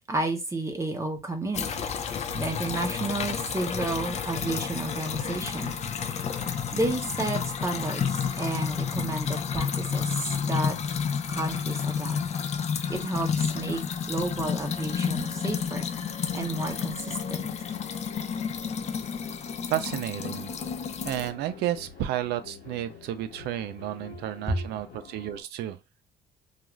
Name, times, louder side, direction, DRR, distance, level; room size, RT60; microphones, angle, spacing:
voice 1, 0.0-1.7 2.4-5.8 6.7-10.8 11.3-12.2 12.9-13.8 14.1-15.9 16.3-17.5 24.5-24.6, right 2 dB, 15° right, 0.7 m, -31 dB
sound 1, 1.5-21.3, left 6 dB, 40° left, 0.5 m, -31 dB
sound 2, 14.4-25.4, left 6 dB, 70° left, 1.1 m, -47 dB
voice 2, 19.7-20.5 21.0-25.8, right 12 dB, 80° right, 0.4 m, -32 dB
2.4 x 2.3 x 3.0 m
cardioid pair, 110°, 17 cm